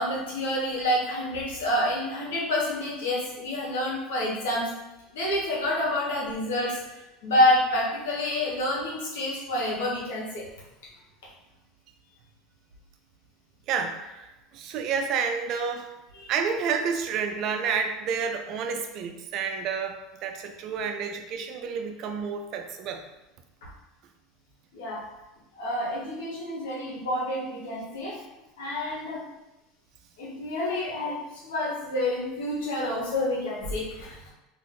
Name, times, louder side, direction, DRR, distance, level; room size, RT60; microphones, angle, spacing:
voice 1, 0.0-4.7 5.1-10.4 16.1-16.3 23.6-23.7 24.7-25.0 25.6-28.2 28.6-29.2 30.2-34.2, left 1 dB, 90° left, -4 dB, 1.1 m, -28 dB
voice 2, 13.7-15.9 16.3-19.9 20.2-23.0, right 6 dB, 50° right, 5 dB, 0.4 m, -30 dB
2.5 x 2.5 x 3.7 m, 0.99 s
supercardioid pair, 120°, 0 cm